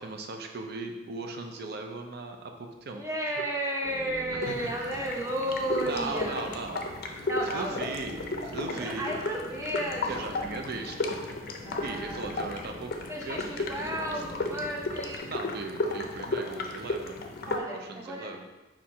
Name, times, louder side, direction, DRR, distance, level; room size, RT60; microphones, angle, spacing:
voice 1, 0.0-3.0 4.5-4.9 5.8-6.8 7.4-9.2 10.1-11.2 11.8-12.9 13.2-13.7 13.9-14.2 15.3-17.2 17.7-18.5, right 3 dB, 60° right, 4 dB, 0.5 m, -38 dB
voice 2, 2.9-6.4 7.2-7.9 8.7-10.5 11.6-12.3 13.1-15.3 15.8-16.1 17.5-18.3, right 1 dB, 15° right, -2 dB, 0.7 m, -33 dB
sound 1, 3.8-15.2, equal, 75° right, 1.1 m, -45 dB
sound 2, 4.4-17.6, left 2 dB, 55° left, 0.5 m, -35 dB
4.3 x 2.5 x 4.6 m, 1.1 s
head